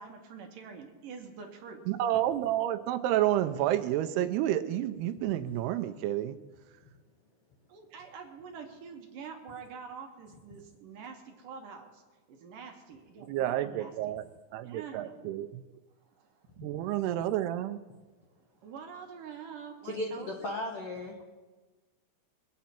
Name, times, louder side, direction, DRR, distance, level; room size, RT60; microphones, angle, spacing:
voice 1, 0.0-1.9 7.7-12.0 12.3-14.2 14.6-15.5 16.0-16.5 18.4-20.3, right 6 dB, 65° right, 2 dB, 2.5 m, -46 dB
voice 2, 1.9-6.4 13.3-14.2 14.5-15.6 16.6-17.8, right 12 dB, 80° right, 9 dB, 2.6 m, -30 dB
voice 3, 19.8-21.3, left 1 dB, 65° left, -2 dB, 1.4 m, -36 dB
23.5 x 9.3 x 4.4 m, 1.2 s
omnidirectional pair, 4.7 m